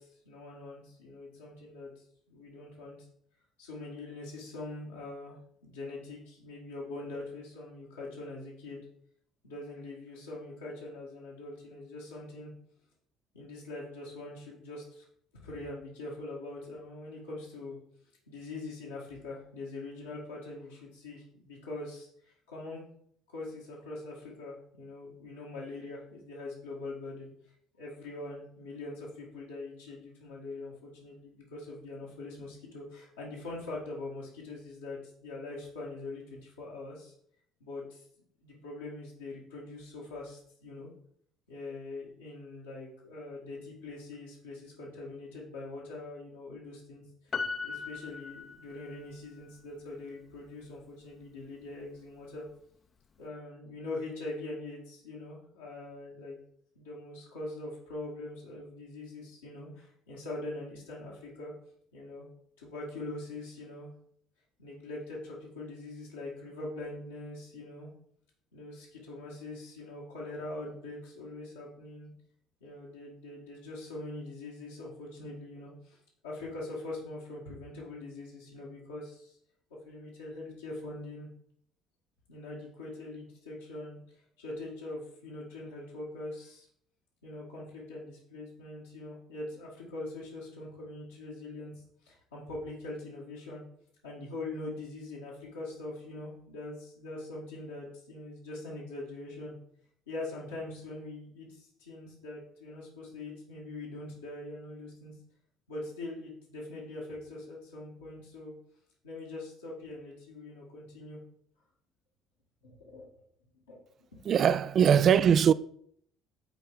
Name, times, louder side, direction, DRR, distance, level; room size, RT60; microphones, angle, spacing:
voice 1, 0.0-3.1 3.6-8.9 9.4-12.5 13.3-15.0 15.4-17.8 18.3-22.8 23.3-27.3 27.8-37.1 37.6-38.1 38.4-40.9 41.5-47.0 47.6-52.5 53.2-56.4 56.8-61.5 61.9-62.3 62.6-63.9 64.6-67.9 68.5-72.1 72.6-79.4 79.7-81.3 82.3-86.7 87.2-93.6 94.0-99.5 100.1-105.1 105.7-108.5 109.0-111.2 112.6-113.1 113.7-113.8, left 2 dB, 85° left, 1.8 m, -43 dB
Piano, 47.3-49.1 49.4-49.5, left 4 dB, 40° left, 0.6 m, -37 dB
voice 2, 114.3-115.5, right 8 dB, 50° right, 0.3 m, -21 dB
7.9 x 4.3 x 3.8 m
hypercardioid pair, 60°, 0 cm